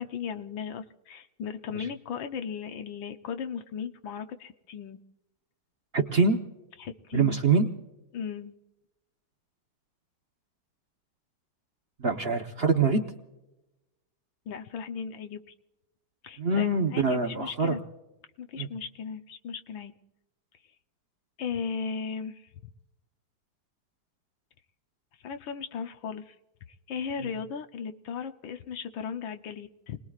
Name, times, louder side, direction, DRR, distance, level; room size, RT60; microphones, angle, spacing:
voice 1, 0.0-5.0 6.8-7.4 8.1-8.5 14.5-15.4 16.2-17.8 18.4-19.9 21.4-22.5 25.2-26.4 26.9-30.0, left 6 dB, 70° left, 7 dB, 1.5 m, -36 dB
voice 2, 5.9-6.4 7.1-7.7 12.0-13.0 16.4-17.8 18.6-18.7, right 4 dB, 45° right, 3 dB, 0.8 m, -24 dB
29.0 x 20.5 x 2.4 m, 0.99 s
omnidirectional pair, 2.3 m